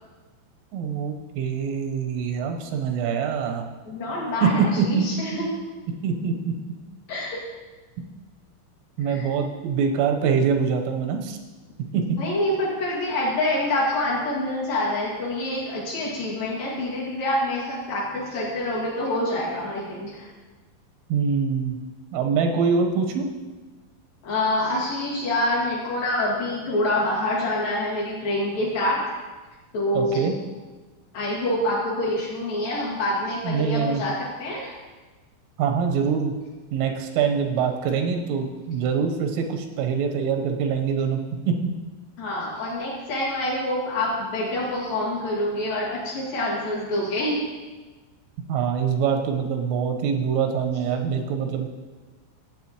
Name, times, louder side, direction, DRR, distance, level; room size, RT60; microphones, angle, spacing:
voice 1, 0.7-3.6 4.4-5.2 6.0-6.5 9.0-11.4 11.9-12.2 21.1-21.8 22.1-23.3 29.9-30.4 33.4-34.0 35.6-36.3 36.7-41.2 41.5-41.7 48.5-51.7, right 6 dB, 90° right, 3 dB, 3.6 m, -24 dB
voice 2, 3.9-5.4 7.1-7.4 9.1-9.3 12.2-20.3 24.2-29.2 29.7-30.3 31.1-34.8 42.2-47.4, left 1 dB, 55° left, -6 dB, 3.4 m, -26 dB
15.5 x 8.4 x 3.0 m, 1.3 s
omnidirectional pair, 5.6 m